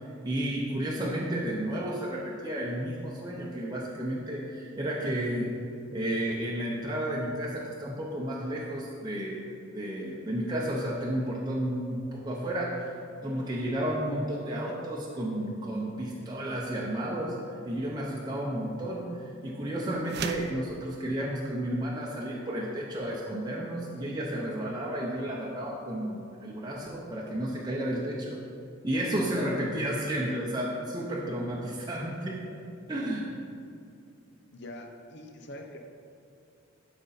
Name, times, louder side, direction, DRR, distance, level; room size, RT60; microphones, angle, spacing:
voice 1, 0.0-5.5 5.9-9.4 9.7-13.0 13.2-28.4 28.8-32.6 32.9-33.4, right 1 dB, 20° right, -4 dB, 0.7 m, -32 dB
sound 1, 20.0-20.6, right 6 dB, 50° right, 0.4 m, -36 dB
voice 2, 34.5-35.8, left 1 dB, 55° left, 4 dB, 0.8 m, -44 dB
12.0 x 5.2 x 4.1 m, 2.5 s
head